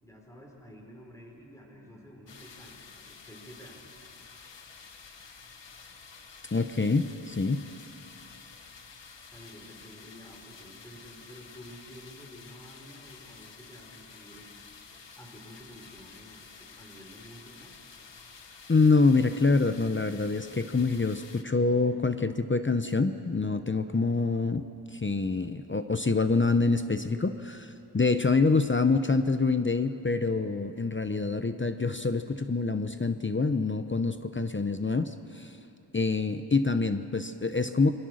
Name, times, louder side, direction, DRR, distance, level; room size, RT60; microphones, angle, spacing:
voice 1, 0.0-4.0 9.3-14.5 15.2-17.8, equal, 5° left, 0 dB, 4.6 m, -50 dB
sound 1, 2.3-21.4, left 5 dB, 75° left, 1.4 m, -50 dB
voice 2, 6.5-7.6 18.7-24.6 24.9-35.6 35.9-37.9, left 3 dB, 25° left, 9 dB, 0.7 m, -26 dB
27.5 x 22.5 x 6.4 m, 2.9 s
wide cardioid pair, 95°, 43 cm